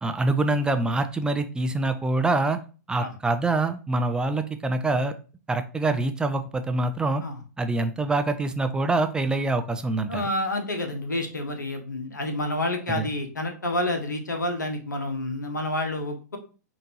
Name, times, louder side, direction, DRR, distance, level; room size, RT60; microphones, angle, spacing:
voice 1, 0.0-2.6 2.9-5.1 5.5-7.2 7.6-10.2 13.0-13.1, right 2 dB, 10° right, 8 dB, 0.3 m, -25 dB
voice 2, 10.1-16.4, left 1 dB, 85° left, 5 dB, 1.0 m, -29 dB
5.0 x 2.7 x 2.9 m, 0.36 s
figure-of-eight pair, 110°, 10 cm